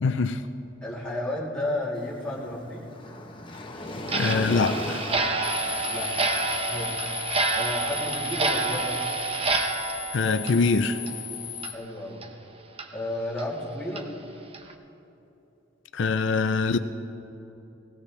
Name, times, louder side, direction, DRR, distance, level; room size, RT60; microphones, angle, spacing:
voice 1, 0.0-0.4 4.1-5.0 10.1-11.0 15.9-16.8, left 4 dB, 75° left, 10 dB, 0.5 m, -23 dB
voice 2, 0.8-2.8 5.9-6.1 6.6-7.0 7.5-9.0 11.7-12.2 12.9-14.1, left 1 dB, 5° left, -8 dB, 3.0 m, -32 dB
Waves surf, 1.9-9.1, left 1 dB, 25° left, 1.0 m, -38 dB
Clock, 4.0-11.3 11.6-11.7 12.2-12.3 12.8-12.9 13.4-13.5 14.0-14.1 14.5-14.7, right 3 dB, 30° right, 0.8 m, -28 dB
sound 1, 5.4-11.7, left 11 dB, 60° left, 1.1 m, -36 dB
19.0 x 17.0 x 3.3 m, 3.0 s
head